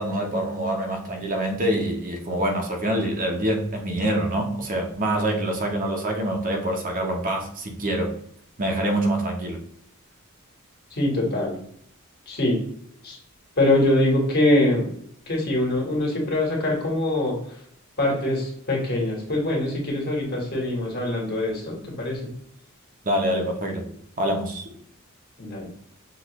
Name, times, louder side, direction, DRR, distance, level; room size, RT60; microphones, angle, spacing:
voice 1, 0.0-8.1 8.6-9.6 23.0-23.8 24.2-24.6, right 1 dB, 40° right, 2 dB, 0.8 m, -25 dB
voice 2, 10.9-11.6 12.3-12.6 13.0-13.2 13.6-14.9 15.3-17.4 18.0-22.3 25.4-25.7, left 1 dB, 50° left, -2 dB, 1.6 m, -23 dB
6.0 x 2.5 x 3.0 m, 0.68 s
head